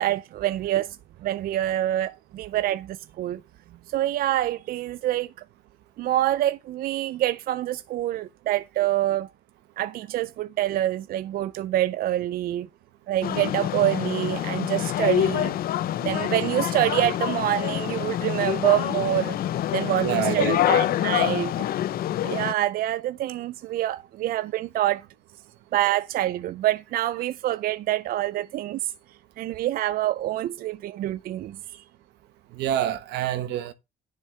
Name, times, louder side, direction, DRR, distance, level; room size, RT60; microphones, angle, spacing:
voice 1, 0.0-3.4 3.9-5.3 6.0-9.3 9.8-12.7 13.1-15.5 16.0-19.4 19.7-21.5 22.2-25.0 25.7-28.9 29.4-31.8, right 13 dB, 60° right, 0.5 m, -26 dB
sound 1, 13.2-22.5, left 12 dB, 60° left, 0.7 m, -26 dB
voice 2, 20.0-20.9 32.5-33.7, right 12 dB, 85° right, 1.3 m, -27 dB
10.5 x 9.2 x 3.3 m
cardioid pair, 110°, 17 cm